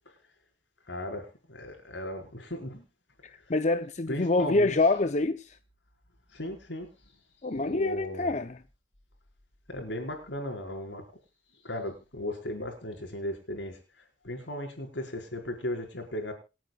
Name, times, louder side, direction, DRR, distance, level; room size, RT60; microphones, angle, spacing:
voice 1, 0.9-2.9 4.1-4.8 6.3-7.1 7.5-8.3 9.7-11.1 11.6-13.8 14.2-16.3, left 1 dB, 80° left, 5.1 m, -36 dB
voice 2, 3.2-5.6 7.4-8.6, left 2 dB, 40° left, 0.7 m, -26 dB
27.5 x 9.3 x 2.4 m
head